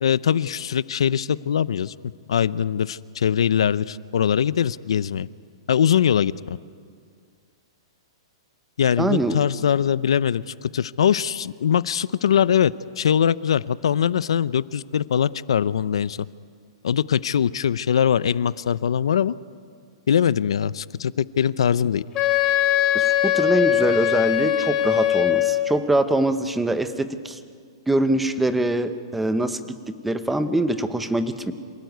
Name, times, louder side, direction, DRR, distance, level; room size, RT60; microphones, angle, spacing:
voice 1, 0.0-1.9 2.3-5.3 5.7-6.6 8.8-16.3 16.8-19.4 20.1-22.0, left 8 dB, 85° left, 18 dB, 0.6 m, -22 dB
voice 2, 9.0-9.4 22.9-27.4 27.9-29.6 30.0-31.5, right 1 dB, 5° right, 10 dB, 0.9 m, -23 dB
Wind instrument woodwind instrument, 22.2-25.7, left 12 dB, 20° left, 2.6 m, -21 dB
26.5 x 17.5 x 9.4 m, 2.1 s
hypercardioid pair, 165°, 3 cm